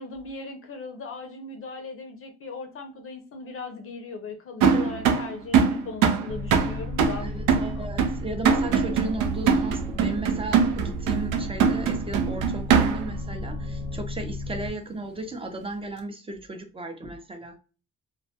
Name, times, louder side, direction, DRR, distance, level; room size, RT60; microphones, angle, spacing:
voice 1, 0.0-7.3 7.7-7.9, left 4 dB, 45° left, 5 dB, 0.5 m, -38 dB
sound 1, 4.6-13.2, right 6 dB, 85° right, 0.5 m, -23 dB
sound 2, 6.3-14.7, left 1 dB, 55° right, 0.9 m, -35 dB
voice 2, 7.2-17.6, right 2 dB, 20° right, 5 dB, 0.5 m, -35 dB
2.2 x 2.1 x 2.7 m, 0.35 s
cardioid pair, 90°, 30 cm